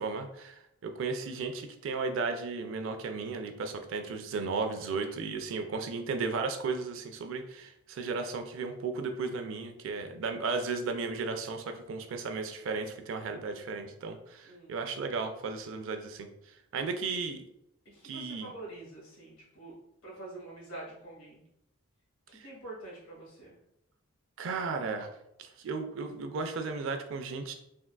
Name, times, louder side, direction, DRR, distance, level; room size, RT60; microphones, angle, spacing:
voice 1, 0.0-16.3 16.7-17.4 18.0-18.5 22.3-22.5 24.4-25.1 25.4-27.5, right 4 dB, 70° right, 6 dB, 0.3 m, -35 dB
voice 2, 14.4-14.8 16.8-17.2 17.8-19.8 20.0-21.4 22.3-23.6, right 2 dB, 85° left, -4 dB, 1.3 m, -46 dB
3.5 x 2.2 x 2.2 m, 0.80 s
head